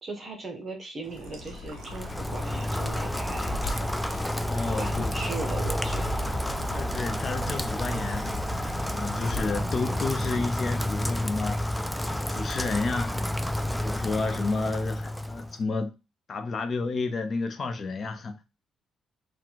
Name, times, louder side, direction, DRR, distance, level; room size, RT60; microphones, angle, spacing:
voice 1, 0.0-3.5 4.7-6.3, right 2 dB, 40° right, 1.1 m, -38 dB
Vehicle, 1.0-11.4, left 2 dB, 75° left, 0.9 m, -39 dB
sound 1, 1.0-11.4, right 5 dB, 70° right, 0.8 m, -45 dB
Rain, 1.8-15.6, left 1 dB, 5° left, 0.3 m, -30 dB
voice 2, 4.4-5.1 6.6-8.4 8.9-11.6 12.1-13.2 13.7-15.9 16.3-18.4, left 3 dB, 45° left, 0.8 m, -31 dB
3.7 x 2.3 x 4.5 m
cardioid pair, 90°, 0 cm